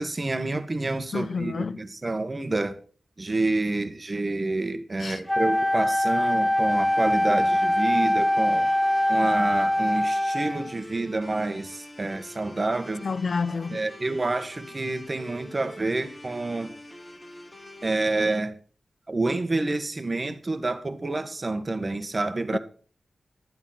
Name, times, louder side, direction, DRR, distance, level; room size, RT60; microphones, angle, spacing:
voice 1, 0.0-2.8 3.2-8.7 9.1-13.1 13.7-16.7 17.8-18.5 19.1-22.6, right 2 dB, 35° right, 1.6 m, -28 dB
voice 2, 1.1-1.8 5.0-5.2 13.0-13.8 22.5-22.6, left 4 dB, 60° left, 0.6 m, -29 dB
Wind instrument woodwind instrument, 5.3-10.8, left 1 dB, 5° left, 0.6 m, -23 dB
sound 1, 6.7-18.4, left 1 dB, 25° left, 2.1 m, -45 dB
12.0 x 9.2 x 5.8 m
wide cardioid pair, 85°, 0 cm